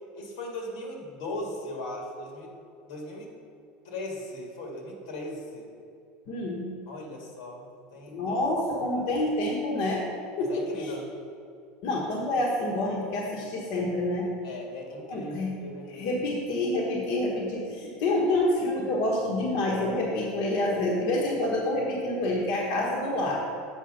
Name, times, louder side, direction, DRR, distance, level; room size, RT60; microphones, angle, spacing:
voice 1, 0.1-2.6 2.8-3.4 3.8-5.7 6.9-8.4 10.5-11.0 14.4-16.1, left 1 dB, 85° left, 0 dB, 1.9 m, -38 dB
voice 2, 6.3-6.7 8.1-10.0 10.4-10.9 11.8-14.3 15.0-15.5 15.9-23.4, left 1 dB, 55° left, -3 dB, 1.2 m, -27 dB
7.3 x 4.8 x 6.4 m, 2.4 s
cardioid pair, 175°, 4 cm